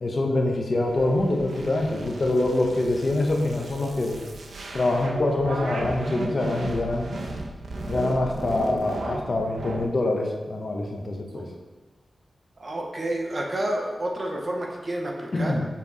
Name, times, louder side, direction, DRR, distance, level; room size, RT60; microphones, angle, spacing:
voice 1, 0.0-4.2 4.7-7.1 7.9-11.5 15.3-15.6, left 2 dB, 40° left, 1 dB, 1.1 m, -25 dB
sound 1, 0.9-9.9, right 2 dB, 80° right, 0.9 m, -35 dB
voice 2, 12.6-15.6, right 1 dB, 40° right, 0 dB, 1.0 m, -29 dB
6.9 x 5.9 x 4.1 m, 1.3 s
wide cardioid pair, 140°, 0 cm